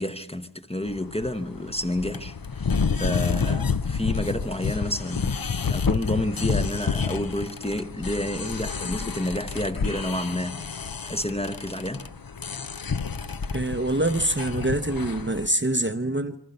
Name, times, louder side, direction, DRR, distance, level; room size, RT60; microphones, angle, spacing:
voice 1, 0.0-12.1, left 1 dB, 15° left, 0.9 m, -30 dB
sound 1, 0.9-15.5, left 5 dB, 50° left, 0.7 m, -29 dB
voice 2, 13.5-16.4, right 1 dB, 25° right, 0.8 m, -25 dB
26.0 x 24.0 x 5.5 m
wide cardioid pair, 40°, 44 cm